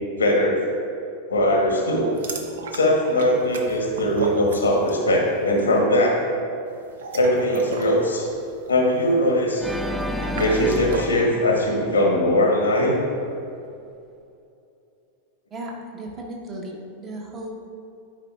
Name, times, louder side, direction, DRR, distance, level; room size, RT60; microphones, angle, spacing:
voice 1, 0.2-0.6 1.3-2.2 2.7-6.2 7.1-8.3 8.7-9.7 10.3-13.0, left 1 dB, 75° left, 0 dB, 1.2 m, -20 dB
sound 1, 2.1-5.1 5.3-5.7 6.8-11.2, right 4 dB, 60° right, 0.6 m, -35 dB
Organ, 9.6-12.7, left 1 dB, 5° right, 0.4 m, -31 dB
voice 2, 15.5-17.5, right 1 dB, 25° right, -2 dB, 1.1 m, -35 dB
10.5 x 5.0 x 2.4 m, 2.6 s
figure-of-eight pair, 90°, 0 cm